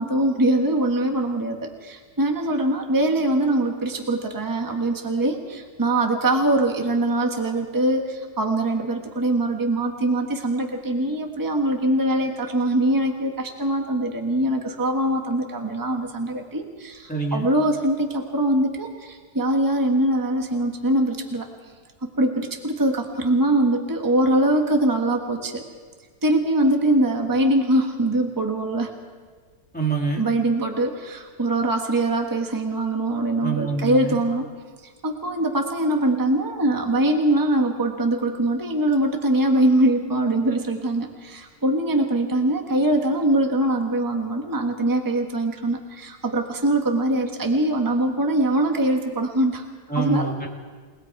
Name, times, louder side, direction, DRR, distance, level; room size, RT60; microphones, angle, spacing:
voice 1, 0.0-21.5 22.0-25.7 26.2-28.9 30.2-34.5 35.0-49.6 49.9-50.3, right 1 dB, 15° right, 3 dB, 1.5 m, -22 dB
voice 2, 17.1-17.5 29.7-30.3 33.4-34.2 49.9-50.5, right 4 dB, 5° left, -1 dB, 2.5 m, -26 dB
29.0 x 19.5 x 4.7 m, 1.5 s
omnidirectional pair, 1.7 m